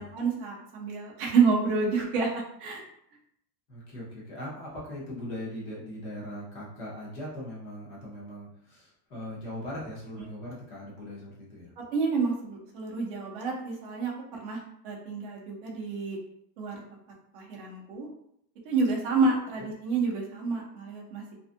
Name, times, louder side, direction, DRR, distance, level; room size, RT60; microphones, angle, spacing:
voice 1, 0.0-2.8 11.9-14.6 14.8-16.2 16.6-16.8 17.3-18.1 18.6-21.3, right 4 dB, 35° right, -2 dB, 0.5 m, -29 dB
voice 2, 3.7-11.7 19.6-19.7, left 1 dB, 30° left, -5 dB, 0.7 m, -40 dB
2.6 x 2.3 x 2.5 m, 0.71 s
supercardioid pair, 170°, 50 cm